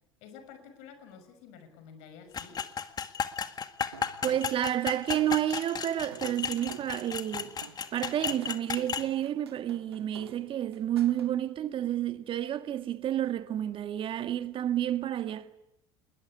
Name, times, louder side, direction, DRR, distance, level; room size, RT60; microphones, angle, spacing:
voice 1, 0.2-2.7, left 6 dB, 60° left, 6.1 m, -50 dB
sound 1, 2.3-9.1, left 7 dB, 30° left, 1.9 m, -34 dB
sound 2, 3.9-11.3, right 8 dB, 85° right, 1.9 m, -49 dB
voice 2, 4.2-7.5 7.9-15.5, right 11 dB, 40° right, 1.8 m, -30 dB
28.5 x 21.5 x 9.8 m
hypercardioid pair, 70°, 13 cm